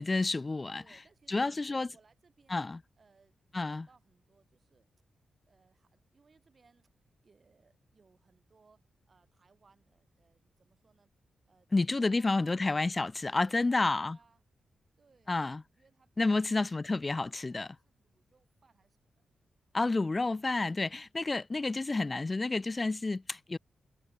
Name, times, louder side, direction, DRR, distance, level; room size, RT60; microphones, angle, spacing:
voice 1, 0.0-0.8 1.3-1.9 2.5-2.8 3.5-3.9 11.7-14.2 15.3-15.6 16.2-17.7 19.7-23.6, left 3 dB, 30° left, 0.4 m, -30 dB
voice 2, 0.8-2.6 3.0-4.9 5.4-11.1 11.5-12.6 13.4-14.4 15.0-19.2, right 4 dB, 50° right, 4.1 m, -66 dB
supercardioid pair, 50°, 0 cm